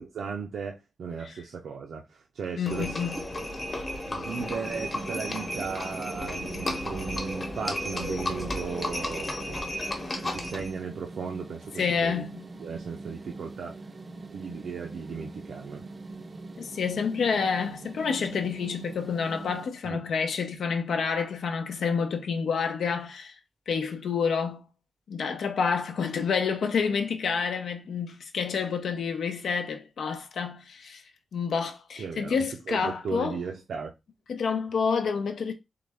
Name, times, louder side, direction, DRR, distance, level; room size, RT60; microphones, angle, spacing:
voice 1, 0.0-3.1 4.0-9.6 10.2-12.3 12.6-13.8 14.3-15.9 19.8-20.1 32.0-32.4 32.7-33.9, right 5 dB, 90° right, 0.6 m, -36 dB
voice 2, 2.6-3.2 11.8-12.5 16.6-23.4 23.7-24.7 25.1-31.0 31.3-33.4 34.3-35.5, left 6 dB, 85° left, 0.7 m, -28 dB
Livestock farm animals working animals, 2.7-10.8, left 1 dB, 25° left, 0.9 m, -33 dB
sound 1, 4.3-19.7, right 3 dB, 35° right, 0.5 m, -43 dB
3.9 x 3.2 x 3.4 m
wide cardioid pair, 170°, 0 cm